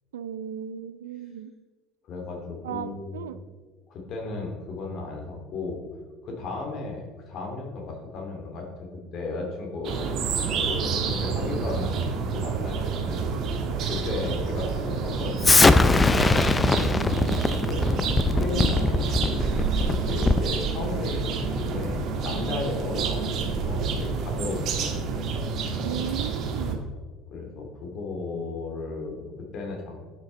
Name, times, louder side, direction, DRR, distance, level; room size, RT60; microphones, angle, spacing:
voice 1, 0.1-1.5 2.6-3.4 18.6-18.8 25.8-26.8, right 9 dB, 80° right, 13 dB, 0.4 m, -35 dB
voice 2, 2.0-3.4 3.9-5.8 6.2-10.0 10.6-13.3 13.8-19.5 20.1-24.9 27.3-30.0, left 3 dB, 50° left, 1 dB, 2.4 m, -35 dB
sound 1, 9.8-26.7, right 5 dB, 50° right, 1.5 m, -28 dB
Explosion, 15.4-20.5, left 3 dB, 20° left, 0.6 m, -21 dB
11.0 x 6.5 x 4.0 m, 1.4 s
hypercardioid pair, 65°, 0 cm